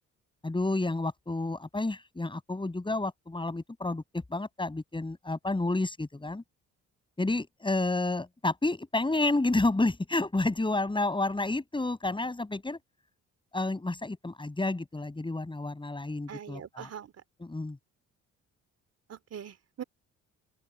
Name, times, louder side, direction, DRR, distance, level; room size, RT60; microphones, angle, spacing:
voice 1, 0.4-6.4 7.2-12.8 13.5-16.9 17.4-17.8, left 2 dB, 15° left, 7.8 m, -30 dB
voice 2, 16.3-17.1 19.1-19.8, right 9 dB, 55° right, 3.2 m, -42 dB
open air
cardioid pair, 90°, 30 cm